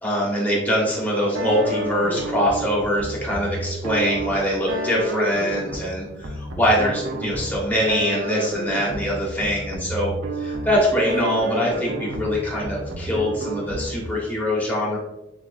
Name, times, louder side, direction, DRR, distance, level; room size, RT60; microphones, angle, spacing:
voice 1, 0.0-15.0, equal, 10° left, -5 dB, 1.3 m, -23 dB
sound 1, 1.3-14.2, equal, 80° right, 0.7 m, -30 dB
7.2 x 2.8 x 2.5 m, 1.0 s
head